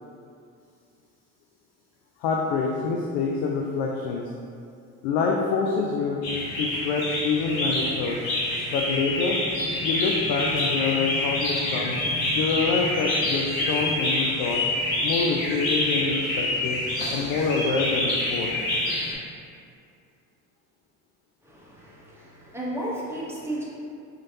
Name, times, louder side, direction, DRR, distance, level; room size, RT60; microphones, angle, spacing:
voice 1, 2.2-4.3 5.0-6.2 6.5-8.2 8.7-9.4 9.8-12.0 12.3-14.6 15.0-16.8 17.1-18.5, left 4 dB, 65° left, -1 dB, 0.5 m, -26 dB
sound 1, 6.2-19.1, left 1 dB, 85° left, 0.9 m, -27 dB
voice 2, 21.4-23.6, right 1 dB, 5° right, -7 dB, 1.0 m, -34 dB
4.0 x 3.1 x 2.7 m, 2.4 s
hypercardioid pair, 75°, 41 cm